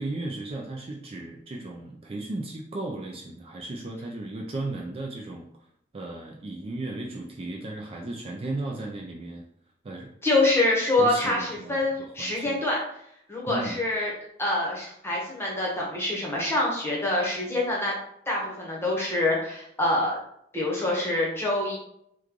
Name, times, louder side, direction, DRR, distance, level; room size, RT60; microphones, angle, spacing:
voice 1, 0.0-5.5 5.9-9.4 9.8-10.1 11.0-11.8 12.2-12.6 13.5-13.8, right 2 dB, 30° right, 0 dB, 0.4 m, -35 dB
voice 2, 10.2-12.8 13.3-14.1 14.4-17.9 18.3-20.2 20.5-21.8, left 2 dB, 15° left, -3 dB, 1.0 m, -25 dB
3.1 x 2.3 x 3.6 m, 0.72 s
head